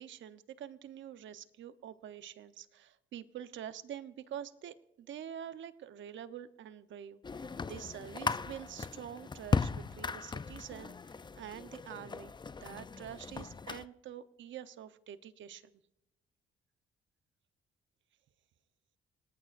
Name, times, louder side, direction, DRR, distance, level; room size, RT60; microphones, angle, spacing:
voice 1, 0.0-10.9 11.4-15.7, right 10 dB, 70° right, 12 dB, 1.0 m, -46 dB
sound 1, 7.2-13.8, left 4 dB, 20° left, 0.6 m, -37 dB
27.0 x 19.0 x 2.6 m, 0.86 s
cardioid pair, 90°, 20 cm